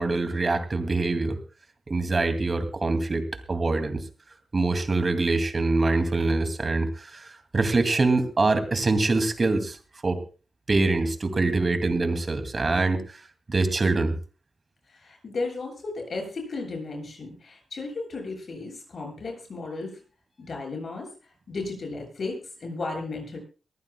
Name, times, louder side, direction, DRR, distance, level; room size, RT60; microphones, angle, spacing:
voice 1, 0.0-1.4 1.9-4.0 4.5-9.8 10.0-10.2 10.7-13.2 13.5-14.1, right 3 dB, 40° right, 8 dB, 2.2 m, -24 dB
voice 2, 14.9-20.0 20.4-21.1 21.5-23.4, left 3 dB, 60° left, 2 dB, 7.7 m, -34 dB
23.5 x 14.5 x 2.2 m, 0.35 s
wide cardioid pair, 100°, 0 cm